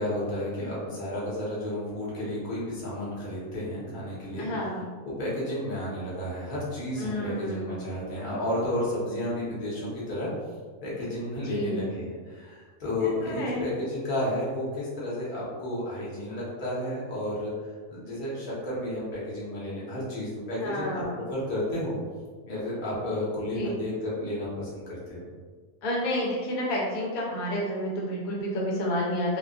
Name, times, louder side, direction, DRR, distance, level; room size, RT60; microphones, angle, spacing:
voice 1, 0.0-4.5 5.0-10.3 10.8-17.5 17.9-21.0 21.3-21.9 22.5-25.3, left 1 dB, 40° left, -8 dB, 0.9 m, -32 dB
voice 2, 4.4-4.8 7.0-7.8 11.5-11.9 13.0-13.7 20.6-21.3 23.6-23.8 25.8-29.4, equal, 80° left, -3 dB, 1.1 m, -30 dB
2.7 x 2.2 x 2.3 m, 1.5 s
omnidirectional pair, 1.5 m